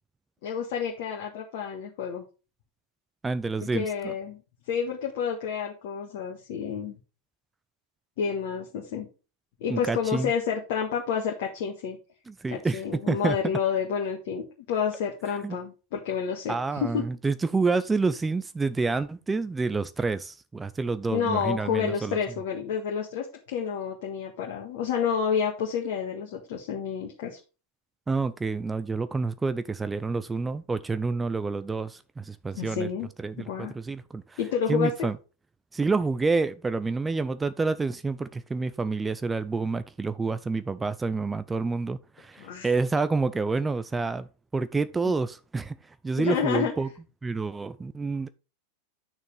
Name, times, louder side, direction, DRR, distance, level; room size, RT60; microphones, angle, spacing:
voice 1, 0.4-2.2 3.6-4.4 4.7-7.0 8.2-9.1 9.6-12.0 12.5-17.0 21.1-27.4 32.6-33.1 33.4-33.7 34.4-35.1 42.4-42.7 45.0-45.1 46.2-46.7, left 7 dB, 50° left, 1.6 m, -29 dB
voice 2, 3.2-4.1 9.7-10.3 12.3-12.8 13.1-13.4 15.4-15.6 16.5-22.2 28.1-32.9 33.2-34.4 34.7-35.2 35.7-44.3 44.5-45.8 46.0-46.9 47.2-48.3, right 4 dB, 10° right, 0.5 m, -28 dB
9.1 x 6.5 x 3.5 m
figure-of-eight pair, 90°, 0 cm